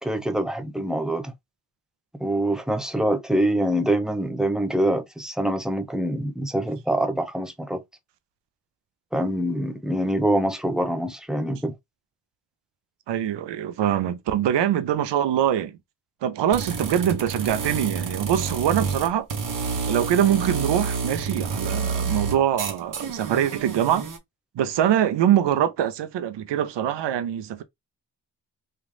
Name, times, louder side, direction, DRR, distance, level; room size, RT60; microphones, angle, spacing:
voice 1, 0.0-1.3 2.2-7.8 9.1-11.8, right 1 dB, ahead, 0.7 m, -25 dB
voice 2, 13.1-15.8 16.2-19.3 19.9-24.1 24.5-27.6, right 10 dB, 75° right, 0.7 m, -23 dB
sound 1, 16.5-24.2, right 5 dB, 45° right, 1.0 m, -29 dB
3.2 x 2.5 x 2.3 m
supercardioid pair, 45°, 43 cm